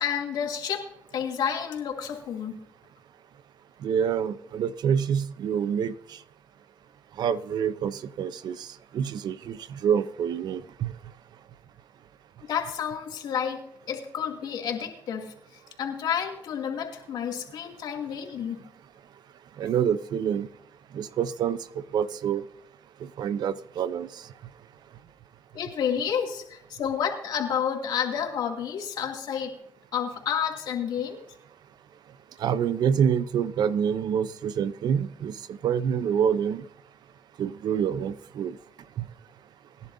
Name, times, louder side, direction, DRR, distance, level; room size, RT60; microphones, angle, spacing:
voice 1, 0.0-2.6 12.4-18.6 25.5-29.6 29.9-31.2, left 8 dB, 80° left, 1 dB, 2.6 m, -30 dB
voice 2, 3.8-5.9 7.2-8.7 8.9-10.9 19.6-20.5 20.9-21.6 21.9-22.4 23.2-24.1 32.4-36.6 37.4-38.6 39.0-39.1, right 8 dB, 80° right, 14 dB, 0.7 m, -27 dB
22.5 x 11.0 x 2.7 m, 0.71 s
supercardioid pair, 60°, 7 cm